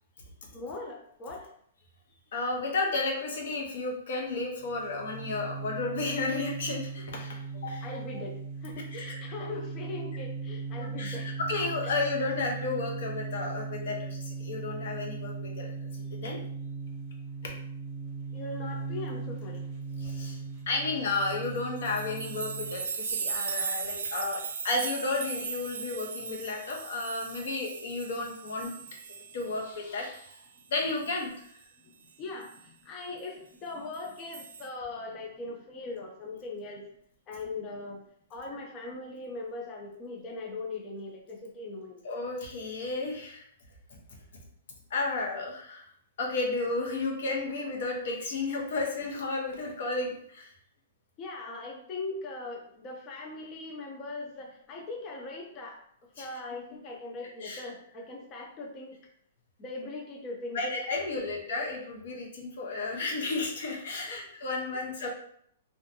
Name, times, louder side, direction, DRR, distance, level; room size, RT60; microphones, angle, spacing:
voice 1, 0.5-1.5 7.8-11.3 18.3-19.6 32.2-36.9 37.3-38.0 38.3-42.0 51.2-55.8 56.2-59.0 59.6-60.6 61.2-61.6 64.1-64.2, left 3 dB, 20° left, 0 dB, 0.4 m, -40 dB
voice 2, 2.3-7.9 9.0-9.2 11.0-15.7 16.1-16.4 20.0-20.4 20.7-28.7 29.3-30.4 30.7-31.3 42.0-43.4 44.9-45.9 46.2-50.5 56.2-56.3 57.4-57.6 60.5-65.1, left 3 dB, 60° left, 0 dB, 0.8 m, -32 dB
sound 1, 4.6-22.9, right 4 dB, 25° right, 0.7 m, -38 dB
sound 2, 21.4-29.8 30.1-31.2 32.4-32.5 33.9-34.7, right 5 dB, 75° right, 0.3 m, -37 dB
2.5 x 2.2 x 2.6 m, 0.67 s
hypercardioid pair, 165°, 0 cm